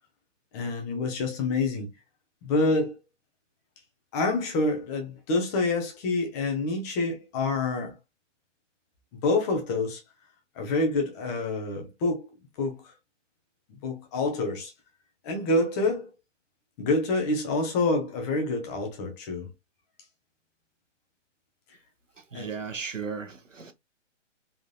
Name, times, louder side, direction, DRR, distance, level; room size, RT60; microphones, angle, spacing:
voice 1, 0.5-1.9 2.4-3.0 4.1-8.0 9.2-10.0 10.6-12.3 12.6-12.8 13.8-14.7 15.2-16.1 16.8-19.5 22.3-22.5, left 2 dB, 15° left, 0.7 m, -27 dB
voice 2, 22.2-23.7, right 5 dB, 80° right, 1.0 m, -36 dB
3.6 x 3.5 x 2.2 m
figure-of-eight pair, 135°, 37 cm